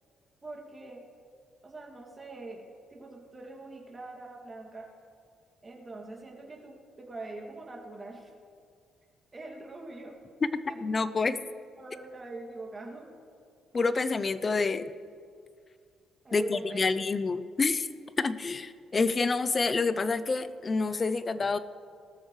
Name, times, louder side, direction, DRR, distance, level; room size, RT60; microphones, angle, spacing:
voice 1, 0.4-1.0 1.6-2.6 2.9-4.9 5.6-8.3 9.3-10.2 10.7-10.8 11.5-13.1 16.2-16.9, right 2 dB, 25° right, -1 dB, 2.4 m, -43 dB
voice 2, 10.5-11.4 13.7-14.9 16.3-17.9 18.2-21.6, left 4 dB, 35° left, 13 dB, 0.6 m, -28 dB
19.0 x 13.5 x 3.3 m, 2.3 s
cardioid pair, 90°, 0 cm